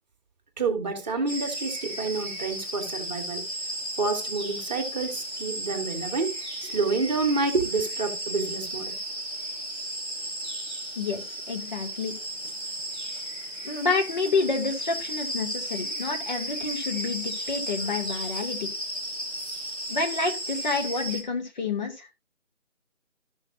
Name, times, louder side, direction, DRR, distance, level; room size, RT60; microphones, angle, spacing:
voice 1, 0.6-3.4 4.0-6.3 6.6-9.0, right 4 dB, 35° right, 1.9 m, -28 dB
sound 1, 1.3-21.2, right 1 dB, 10° left, 0.7 m, -34 dB
voice 2, 11.0-12.1 13.6-18.7 19.9-22.1, left 4 dB, 35° left, 2.3 m, -29 dB
14.0 x 6.4 x 2.6 m
figure-of-eight pair, 160°, 38 cm